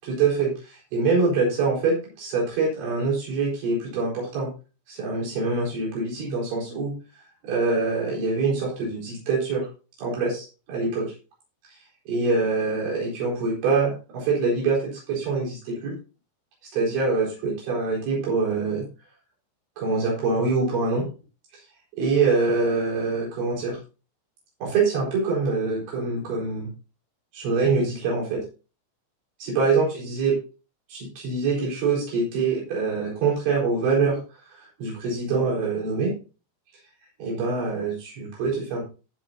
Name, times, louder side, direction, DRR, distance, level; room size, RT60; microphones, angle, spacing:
voice 1, 0.0-4.5 4.9-6.9 7.4-9.7 10.0-11.1 12.1-15.9 16.7-18.9 19.8-21.1 21.5-21.6 22.0-23.8 24.6-26.7 27.3-28.4 29.4-30.4 30.9-34.2 34.8-36.1 37.2-38.8, right 4 dB, 70° right, -4 dB, 6.7 m, -24 dB
18.5 x 6.3 x 2.7 m, 0.32 s
omnidirectional pair, 5.5 m